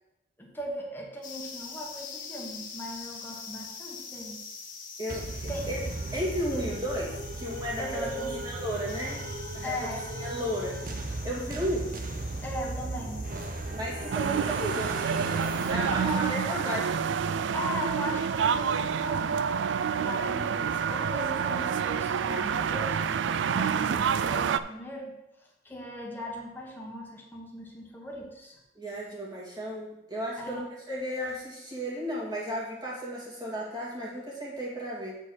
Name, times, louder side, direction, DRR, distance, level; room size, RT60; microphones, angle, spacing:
voice 1, 0.4-4.4 5.5-5.7 7.8-8.4 9.6-10.1 12.4-13.3 15.4-16.6 17.5-19.4 20.0-25.1 25.4-28.6 30.4-30.6, equal, 10° left, -1 dB, 1.4 m, -38 dB
sound 1, 1.2-15.7, left 5 dB, 50° left, 1.6 m, -45 dB
sound 2, 5.1-16.5, right 2 dB, 50° right, 0.7 m, -37 dB
voice 2, 6.1-9.2 9.5-9.8 10.1-10.7 11.2-11.9 13.7-16.8 28.8-35.1, equal, 20° right, -5 dB, 2.3 m, -34 dB
sound 3, 14.1-24.6, right 7 dB, 75° right, 0.4 m, -28 dB
7.5 x 4.5 x 6.3 m, 0.93 s
head